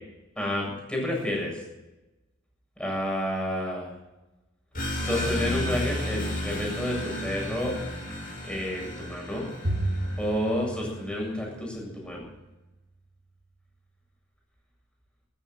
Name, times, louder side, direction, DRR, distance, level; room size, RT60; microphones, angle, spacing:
voice 1, 0.4-1.6 2.8-3.9 5.0-7.7 8.4-9.5 10.2-12.2, left 1 dB, 5° left, -1 dB, 7.5 m, -30 dB
sound 1, 4.7-11.0, left 1 dB, 45° left, 7.6 m, -33 dB
Bowed string instrument, 9.6-12.2, right 1 dB, 90° right, 3.5 m, -33 dB
14.0 x 13.5 x 7.4 m, 1.0 s
head